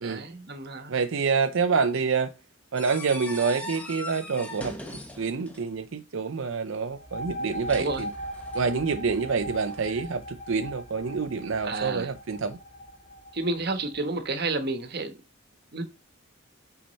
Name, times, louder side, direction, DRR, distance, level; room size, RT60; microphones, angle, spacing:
voice 1, 0.0-1.0 7.8-8.0 11.6-12.1 13.3-15.2 15.7-15.8, right 3 dB, 50° right, 1.1 m, -30 dB
voice 2, 0.9-2.3 2.7-4.8 5.2-8.1 8.5-12.6, right 5 dB, 65° right, 0.5 m, -27 dB
sound 1, 2.8-5.8 7.4-8.7 9.6-10.0, left 1 dB, 5° left, 1.0 m, -40 dB
sound 2, 6.9-14.3, equal, 30° left, 2.7 m, -39 dB
6.3 x 5.7 x 4.0 m
head